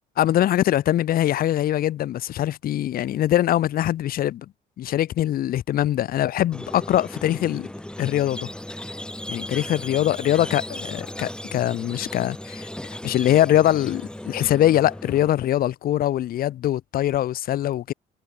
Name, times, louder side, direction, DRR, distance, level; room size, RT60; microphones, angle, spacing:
voice 1, 0.2-4.4 4.8-7.7 8.0-8.5 9.3-12.7 13.0-17.9, left 12 dB, 60° left, 1.3 m, -22 dB
Squeak, 6.5-15.3, left 1 dB, 5° left, 4.2 m, -36 dB
cardioid pair, 110°, 17 cm